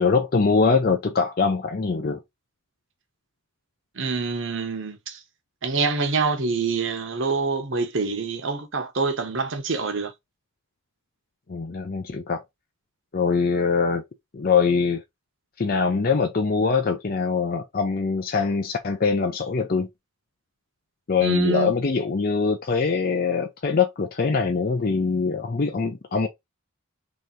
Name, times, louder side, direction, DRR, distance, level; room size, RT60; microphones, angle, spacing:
voice 1, 0.0-2.2 11.5-12.4 13.1-14.0 14.3-15.0 15.6-19.9 21.1-26.3, left 5 dB, 40° left, 0.5 m, -23 dB
voice 2, 4.0-5.2 5.6-10.1 21.2-21.7, right 4 dB, 55° right, 0.9 m, -26 dB
3.3 x 3.0 x 3.8 m
head